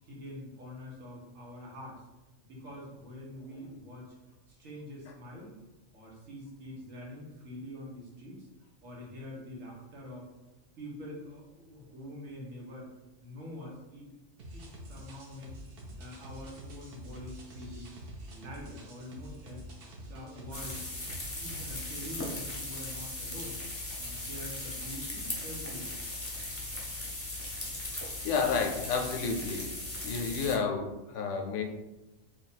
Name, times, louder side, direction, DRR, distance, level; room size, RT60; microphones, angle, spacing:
voice 1, 0.1-2.0 2.4-4.1 4.6-5.6 5.9-8.4 8.8-10.3 10.8-12.9 13.2-14.1 14.5-15.5 16.0-17.9 18.3-19.6 20.0-20.9 21.4-23.6 24.0-26.0, left 1 dB, 85° right, -3 dB, 1.4 m, -45 dB
sound 1, 14.4-21.8, equal, 55° right, 0.8 m, -47 dB
sound 2, 20.5-30.6, left 2 dB, 15° left, 0.6 m, -38 dB
voice 2, 27.9-29.7 30.0-31.6, left 5 dB, 70° left, 3 dB, 0.9 m, -31 dB
3.3 x 2.3 x 4.0 m, 1.0 s
omnidirectional pair, 1.3 m